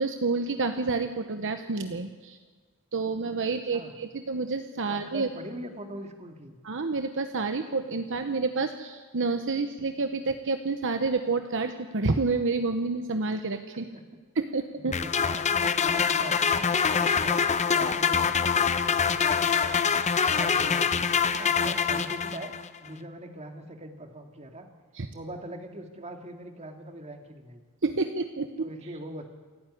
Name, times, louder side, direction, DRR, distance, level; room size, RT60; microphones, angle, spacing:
voice 1, 0.0-2.4 2.9-5.3 6.6-13.9 14.4-14.9 24.9-25.1 27.8-28.7, right 3 dB, 60° right, 7 dB, 0.9 m, -29 dB
voice 2, 3.5-3.9 4.8-6.6 13.9-14.0 14.8-19.9 20.2-22.5 22.8-24.7 25.1-27.6 28.6-29.3, right 1 dB, 30° right, 4 dB, 2.1 m, -42 dB
sound 1, 14.9-22.7, left 6 dB, 30° left, 0.7 m, -25 dB
27.5 x 9.7 x 9.9 m, 1.4 s
head